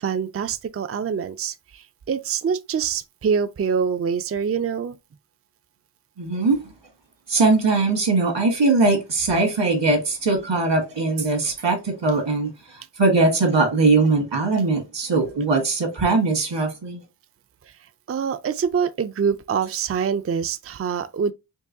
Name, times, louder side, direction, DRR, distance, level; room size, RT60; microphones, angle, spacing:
voice 1, 0.0-5.0 18.1-21.3, right 6 dB, 35° right, 0.4 m, -25 dB
voice 2, 6.2-6.6 7.3-17.0, right 3 dB, 85° right, 1.6 m, -21 dB
4.6 x 2.8 x 2.6 m
wide cardioid pair, 55°, 42 cm